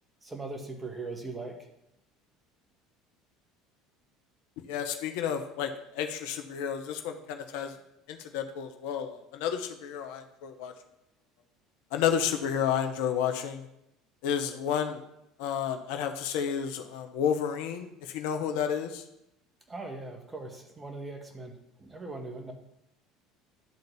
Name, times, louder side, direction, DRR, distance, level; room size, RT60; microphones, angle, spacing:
voice 1, 0.2-1.5 19.7-22.5, right 3 dB, 20° right, 3 dB, 1.8 m, -40 dB
voice 2, 4.6-7.7 8.1-10.7 11.9-13.7 14.2-15.0 15.4-19.0, left 8 dB, 65° left, 6 dB, 0.8 m, -31 dB
10.5 x 3.9 x 7.0 m, 0.83 s
figure-of-eight pair, 65°, 0 cm